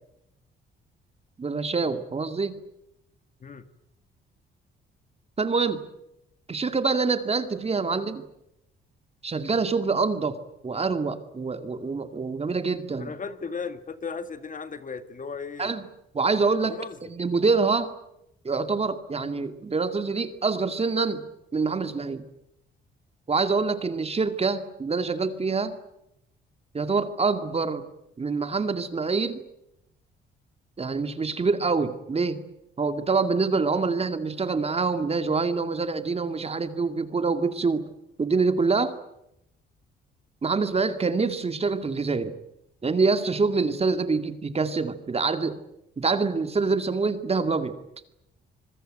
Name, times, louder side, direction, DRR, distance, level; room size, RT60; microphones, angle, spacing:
voice 1, 1.4-2.5 5.4-5.8 6.5-8.2 9.2-10.4 10.6-13.1 15.6-15.8 16.1-17.9 18.4-21.2 21.5-22.2 23.3-25.7 26.7-27.9 28.2-29.4 30.8-32.4 32.8-37.8 38.2-38.9 40.4-42.3 42.8-45.6 46.0-47.8, right 4 dB, 30° right, 9 dB, 2.3 m, -25 dB
voice 2, 13.0-15.7 16.6-17.0, left 5 dB, 40° left, 10 dB, 2.1 m, -36 dB
26.0 x 20.5 x 9.1 m, 0.84 s
cardioid pair, 90°, 20 cm